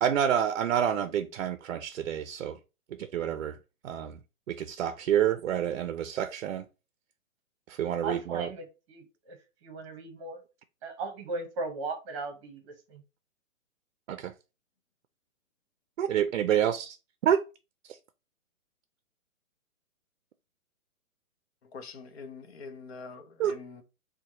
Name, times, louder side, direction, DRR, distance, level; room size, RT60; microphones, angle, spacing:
voice 1, 0.0-2.6 3.0-3.6 3.8-4.2 4.5-6.7 7.7-8.5 14.1-14.3 16.0-17.0 17.2-17.4 17.9-18.0 23.4-23.5, right 9 dB, 60° right, 0.5 m, -28 dB
voice 2, 8.0-10.4 10.8-13.0, right 3 dB, 25° right, 0.9 m, -38 dB
voice 3, 21.6-23.8, left 4 dB, 50° left, 0.8 m, -44 dB
4.5 x 2.3 x 2.8 m
hypercardioid pair, 155°, 40 cm